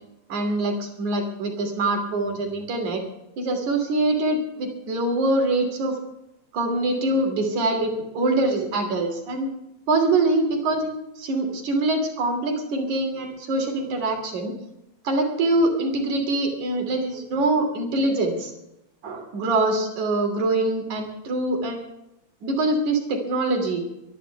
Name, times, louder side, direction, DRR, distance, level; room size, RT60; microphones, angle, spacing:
voice 1, 0.3-3.0 3.4-6.0 6.5-9.5 9.9-10.9 11.2-14.5 15.0-18.5 19.0-21.9 22.4-23.8, right 2 dB, 85° right, 3 dB, 4.5 m, -24 dB
25.0 x 11.5 x 3.5 m, 0.87 s
omnidirectional pair, 3.3 m